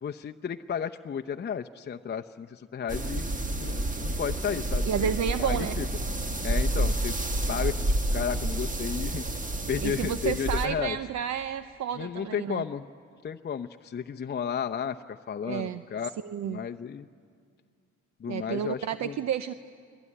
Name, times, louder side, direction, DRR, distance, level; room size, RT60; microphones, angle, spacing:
voice 1, 0.0-3.3 3.6-5.1 5.4-5.8 6.4-7.2 7.5-9.2 9.7-11.0 12.0-12.9 13.2-16.1 16.4-17.1 18.2-19.2, left 7 dB, 35° left, 6 dB, 0.7 m, -33 dB
sound 1, 2.9-10.7, right 1 dB, 25° right, 1.7 m, -29 dB
voice 2, 4.9-5.8 9.8-12.6 15.4-15.8 16.2-16.6 18.3-19.5, right 9 dB, 65° right, 12 dB, 0.8 m, -31 dB
29.5 x 20.0 x 9.9 m, 2.2 s
cardioid pair, 90°, 30 cm